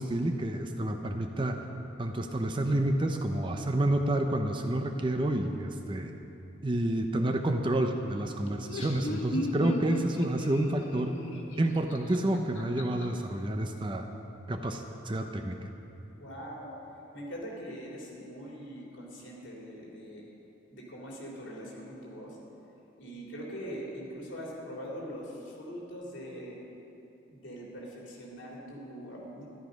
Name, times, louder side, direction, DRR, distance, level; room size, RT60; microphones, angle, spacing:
voice 1, 0.0-1.6 2.0-6.1 6.6-11.1 11.6-14.1 14.5-15.7, right 1 dB, 25° right, 5 dB, 0.6 m, -29 dB
Laughter, 8.5-13.0, left 1 dB, 85° left, 1.4 m, -35 dB
voice 2, 16.2-16.7 17.1-20.3 20.7-22.4 23.0-26.6 27.3-29.5, equal, 65° left, -3 dB, 3.1 m, -42 dB
13.5 x 11.5 x 5.3 m, 2.9 s
head